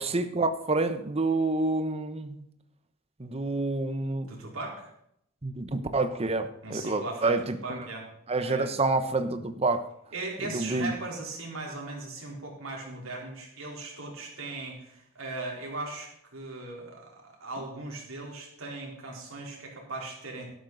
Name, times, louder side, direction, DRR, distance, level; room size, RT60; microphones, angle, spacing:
voice 1, 0.0-2.4 3.2-4.3 5.4-7.8 8.3-9.9 10.4-10.9, right 3 dB, 30° right, 0.9 m, -28 dB
voice 2, 4.3-4.9 6.6-7.3 7.6-8.1 8.3-8.7 10.1-20.5, right 2 dB, 75° right, 4.1 m, -38 dB
12.5 x 12.0 x 4.0 m
head